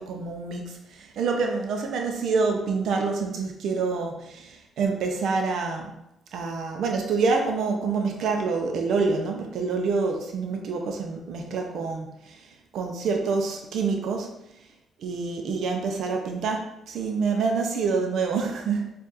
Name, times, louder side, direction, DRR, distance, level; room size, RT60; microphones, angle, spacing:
voice 1, 0.0-5.9 6.3-12.4 12.7-14.3 15.0-18.8, right 4 dB, 75° right, 3 dB, 0.5 m, -27 dB
4.6 x 2.4 x 2.8 m, 0.83 s
cardioid pair, 90°, 0 cm